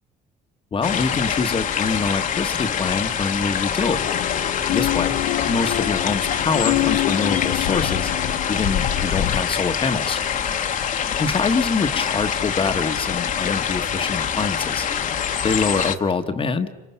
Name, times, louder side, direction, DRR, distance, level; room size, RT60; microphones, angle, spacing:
voice 1, 0.7-4.1 4.7-5.2 5.5-8.1 8.5-10.2 11.2-14.9 15.4-16.7, left 4 dB, 30° left, 8 dB, 1.3 m, -24 dB
sound 1, 0.8-16.0, left 8 dB, 50° left, 1.4 m, -25 dB
sound 2, 3.9-9.4, left 14 dB, 80° left, 0.9 m, -26 dB
30.0 x 27.5 x 5.7 m, 1.2 s
cardioid pair, 110°, 17 cm